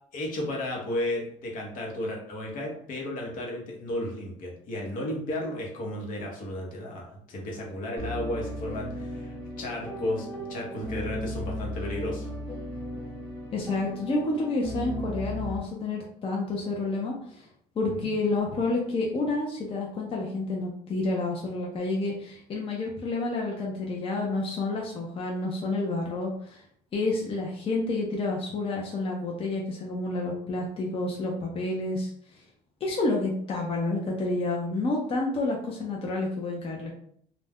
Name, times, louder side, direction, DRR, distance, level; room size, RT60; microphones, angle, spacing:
voice 1, 0.1-12.3 17.8-18.1, left 1 dB, 70° left, -1 dB, 0.9 m, -33 dB
sound 1, 8.0-15.6, equal, 10° left, 1.0 m, -36 dB
voice 2, 13.5-17.4 17.8-26.6 26.9-32.1 32.8-36.9, left 2 dB, 40° left, -1 dB, 0.6 m, -29 dB
2.5 x 2.1 x 3.5 m, 0.64 s
cardioid pair, 105°, 14 cm